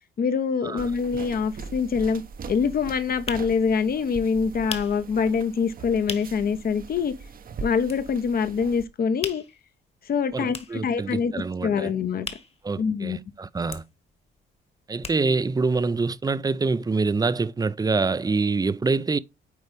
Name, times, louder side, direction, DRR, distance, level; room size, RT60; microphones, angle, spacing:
voice 1, 0.2-2.2 2.5-7.1 7.6-9.4 10.1-12.3 12.8-13.2, left 6 dB, 50° left, 0.9 m, -25 dB
sound 1, 0.8-8.8, right 5 dB, 45° right, 0.9 m, -40 dB
sound 2, 3.3-6.5 6.9-7.0 7.2-8.4 8.7-13.3 13.5-15.6 15.9-16.0 16.2-16.3, left 4 dB, 30° left, 1.4 m, -39 dB
voice 2, 10.3-11.9 12.6-13.8 14.9-19.2, right 4 dB, 20° right, 0.5 m, -25 dB
9.4 x 4.0 x 3.4 m
cardioid pair, 90°, 20 cm